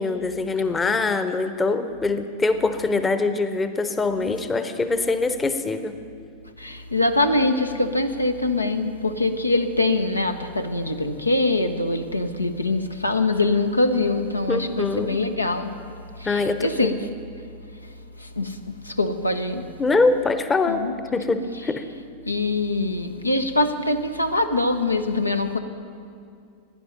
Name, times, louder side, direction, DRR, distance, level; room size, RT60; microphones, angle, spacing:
voice 1, 0.0-6.0 14.5-15.2 16.2-17.0 19.8-21.9, left 3 dB, 15° left, 10 dB, 0.8 m, -23 dB
voice 2, 6.6-15.7 16.2-17.0 18.2-18.6 18.8-19.7 20.7-21.0 22.3-25.6, left 2 dB, 85° left, 8 dB, 0.7 m, -23 dB
16.0 x 10.0 x 5.8 m, 2.4 s
figure-of-eight pair, 90°, 0 cm